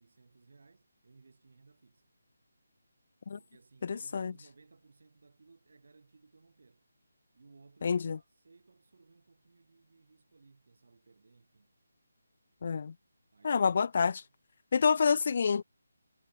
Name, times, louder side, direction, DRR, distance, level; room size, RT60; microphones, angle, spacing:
voice 1, 0.0-2.1 3.3-6.9 7.3-11.7 13.3-14.3 14.8-15.1, right 4 dB, 60° right, 7.4 m, -61 dB
voice 2, 3.8-4.3 7.8-8.2 12.6-12.9 13.4-14.2 14.7-15.6, left 5 dB, 45° left, 0.4 m, -28 dB
figure-of-eight pair, 155°, 0 cm